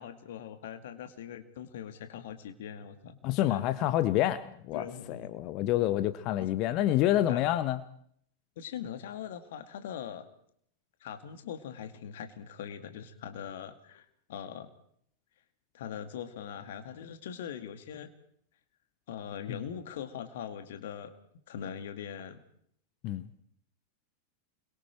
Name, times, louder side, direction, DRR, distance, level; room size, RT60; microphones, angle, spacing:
voice 1, 0.0-3.2 3.5-3.7 4.7-5.3 7.3-7.4 8.6-10.3 11.0-14.7 15.7-18.1 19.1-21.1 21.5-22.4, left 8 dB, 55° left, 2.1 m, -41 dB
voice 2, 3.2-7.8 19.5-19.6 23.0-23.3, left 13 dB, 40° left, 0.9 m, -28 dB
29.0 x 22.5 x 4.6 m
figure-of-eight pair, 90°, 0 cm